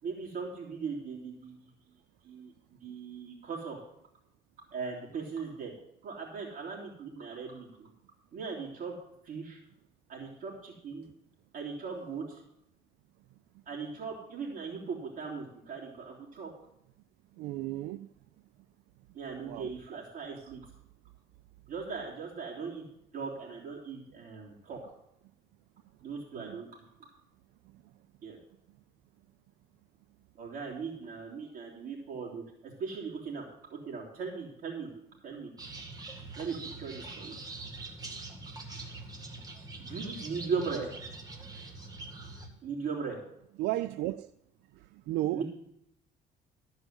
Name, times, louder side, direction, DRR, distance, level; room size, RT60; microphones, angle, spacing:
voice 1, 0.0-1.5 2.2-3.8 4.7-5.7 6.0-7.9 8.3-8.9 9.2-9.6 10.1-11.1 11.5-12.4 13.7-16.5 19.1-20.6 21.7-22.8 23.1-24.8 26.0-26.7 28.2-28.4 30.4-33.4 33.7-34.9 35.2-35.5 36.4-37.4 39.8-40.9 42.6-43.2 45.3-45.4, right 5 dB, 55° right, 3.2 m, -38 dB
voice 2, 17.4-18.1 19.4-19.7 26.3-26.6 43.6-44.3 45.1-45.4, right 15 dB, 80° right, 0.4 m, -33 dB
sound 1, 35.6-42.5, right 3 dB, 20° right, 1.9 m, -44 dB
14.0 x 4.8 x 8.0 m
cardioid pair, 110°, 17 cm